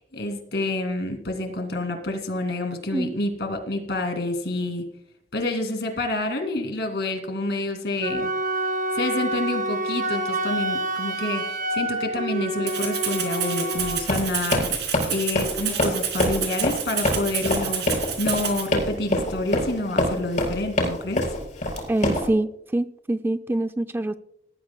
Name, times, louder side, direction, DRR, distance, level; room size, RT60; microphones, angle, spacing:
voice 1, 0.1-4.8 5.3-8.3 8.9-14.7 15.1-21.2, left 2 dB, 70° left, 5 dB, 2.5 m, -28 dB
Wind instrument woodwind instrument, 8.0-14.1, right 2 dB, 50° right, 2.2 m, -27 dB
Rattle (instrument), 12.7-18.7, right 9 dB, 70° right, 3.3 m, -29 dB
Run, 13.7-22.3, left 1 dB, 45° left, 4.6 m, -25 dB
voice 2, 21.9-24.2, right 1 dB, 10° right, 10 dB, 0.3 m, -25 dB
19.5 x 13.5 x 2.3 m, 0.79 s
head